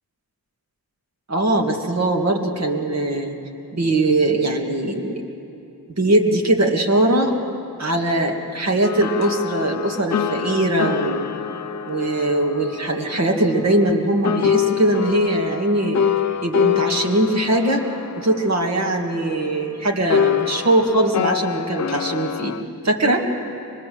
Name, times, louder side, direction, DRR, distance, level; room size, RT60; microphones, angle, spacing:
voice 1, 1.3-3.4 3.7-5.2 6.0-7.3 7.8-11.3 11.9-16.0 16.4-17.8 18.2-22.5 22.8-23.2, right 1 dB, 45° right, 1 dB, 2.1 m, -20 dB
sound 1, 8.8-14.0 14.2-19.7 20.1-22.6, left 8 dB, 50° left, 0.5 m, -26 dB
24.5 x 20.5 x 7.7 m, 2.7 s
wide cardioid pair, 150°, 36 cm